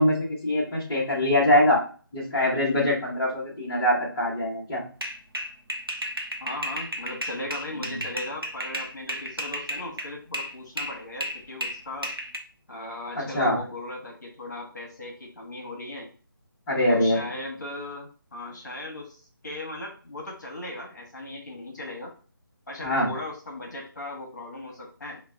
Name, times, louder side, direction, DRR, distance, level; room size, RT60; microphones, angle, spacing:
voice 1, 0.0-1.8 2.1-4.8 13.1-13.6 16.7-17.3 22.8-23.1, left 1 dB, 15° left, -8 dB, 0.9 m, -23 dB
sound 1, 5.0-10.5 10.8-12.4, equal, 80° right, 0.8 m, -33 dB
voice 2, 6.4-12.1 12.7-16.1 16.9-22.1 22.7-25.2, left 2 dB, 50° left, -1 dB, 1.1 m, -38 dB
5.8 x 2.2 x 2.2 m, 0.38 s
figure-of-eight pair, 155°, 12 cm